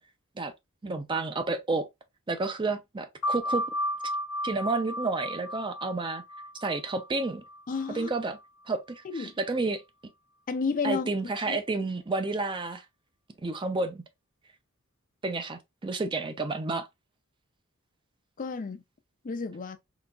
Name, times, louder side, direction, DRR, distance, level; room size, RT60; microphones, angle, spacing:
voice 1, 0.8-1.9 2.3-3.7 4.4-6.2 6.6-7.4 7.9-8.4 8.7-9.8 10.8-12.8 13.4-14.0 15.2-16.9, right 3 dB, 20° right, 0.4 m, -30 dB
sound 1, 3.2-8.4, equal, 80° left, 0.9 m, -34 dB
voice 2, 7.7-8.1 9.0-9.3 10.5-11.1 11.3-11.6 18.4-18.8 19.2-19.8, left 4 dB, 40° left, 0.4 m, -31 dB
3.8 x 2.7 x 2.3 m
head